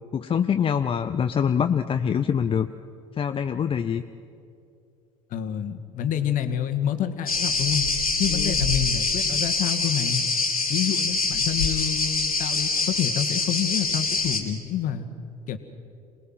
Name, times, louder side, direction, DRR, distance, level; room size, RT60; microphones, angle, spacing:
voice 1, 0.1-2.7 3.2-4.0 8.3-8.6, left 7 dB, 30° left, 8 dB, 0.8 m, -24 dB
voice 2, 5.3-7.8 8.2-10.2 10.7-15.1 15.5-15.6, left 9 dB, 50° left, 8 dB, 1.9 m, -28 dB
sound 1, 7.3-14.4, left 3 dB, 90° left, 2.3 m, -25 dB
27.5 x 19.5 x 7.7 m, 2.5 s
figure-of-eight pair, 60°, 18 cm